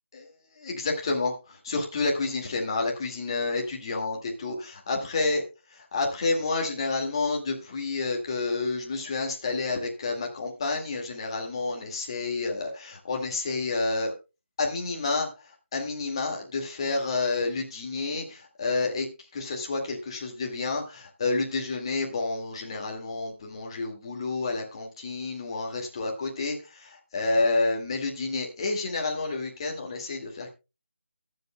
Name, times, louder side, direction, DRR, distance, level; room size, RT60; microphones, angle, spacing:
voice 1, 0.1-5.4 5.7-14.1 14.6-19.1 19.3-30.5, left 3 dB, 25° left, 2.0 m, -29 dB
23.0 x 7.7 x 2.2 m
figure-of-eight pair, 170°, 7 cm